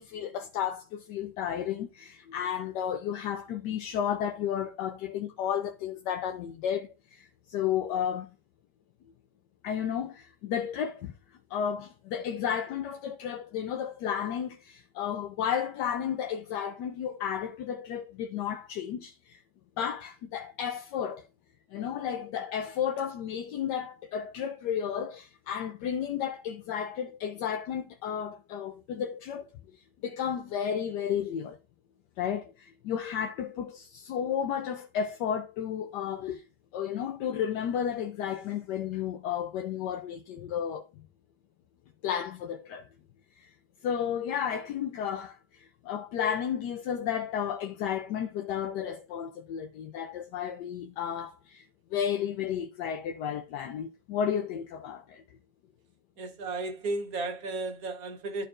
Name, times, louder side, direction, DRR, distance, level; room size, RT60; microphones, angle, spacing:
voice 1, 0.0-8.3 9.6-11.1 11.5-19.4 19.8-21.3 21.7-29.5 30.0-31.6 32.2-36.4 36.7-40.9 42.0-42.9 43.4-43.5 43.8-51.7 51.9-55.2, left 8 dB, 80° left, 1.2 m, -33 dB
voice 2, 56.2-58.4, right 2 dB, 60° right, 1.5 m, -34 dB
12.0 x 4.4 x 2.5 m
omnidirectional pair, 1.8 m